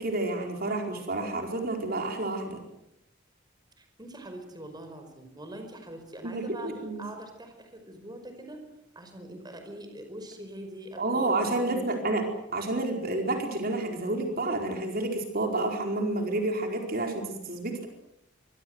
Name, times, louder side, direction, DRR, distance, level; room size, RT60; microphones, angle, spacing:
voice 1, 0.0-2.6 6.2-7.0 11.0-12.3 12.5-17.9, right 2 dB, 50° right, 3 dB, 4.5 m, -29 dB
voice 2, 3.8-8.6 8.9-12.3, right 1 dB, 20° right, 6 dB, 5.0 m, -44 dB
25.0 x 23.5 x 8.0 m, 0.84 s
head